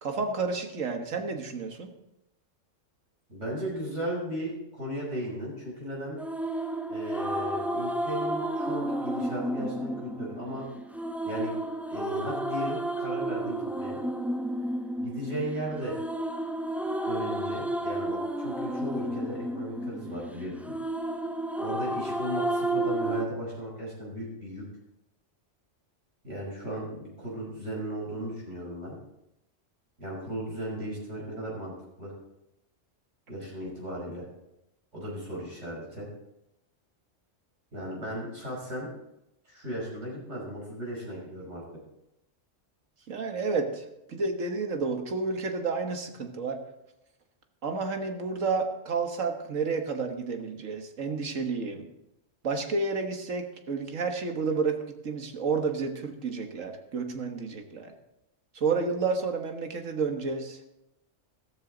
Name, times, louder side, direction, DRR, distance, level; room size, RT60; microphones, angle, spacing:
voice 1, 0.0-1.9 43.1-46.6 47.6-51.9 52.4-57.9 58.6-60.6, right 4 dB, 80° right, 5 dB, 1.8 m, -30 dB
voice 2, 3.3-6.2 6.9-10.6 11.2-11.6 11.9-14.0 15.0-16.0 17.0-20.7 21.6-24.6 26.2-28.9 30.0-31.7 32.0-32.1 33.3-34.3 34.9-36.1 37.7-38.9 39.5-41.6, right 1 dB, 65° right, -4 dB, 6.2 m, -36 dB
sound 1, 6.2-23.2, right 1 dB, ahead, 0.4 m, -32 dB
14.0 x 14.0 x 3.9 m, 0.87 s
omnidirectional pair, 1.3 m